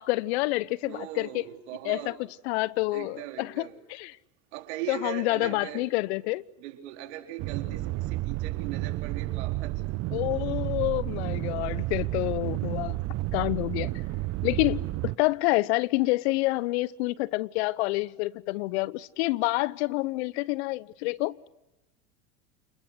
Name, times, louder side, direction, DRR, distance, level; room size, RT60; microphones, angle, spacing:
voice 1, 0.0-1.3 1.8-2.2 2.4-4.2 4.9-6.4 10.1-13.0 13.3-13.9 14.4-21.4, left 21 dB, 65° left, 0.9 m, -28 dB
voice 2, 0.8-2.2 2.9-3.8 4.5-5.8 6.6-10.0, right 12 dB, 65° right, 4.3 m, -39 dB
sound 1, 7.4-15.2, right 19 dB, 45° right, 1.0 m, -31 dB
29.5 x 21.0 x 8.1 m
hypercardioid pair, 95°, 35 cm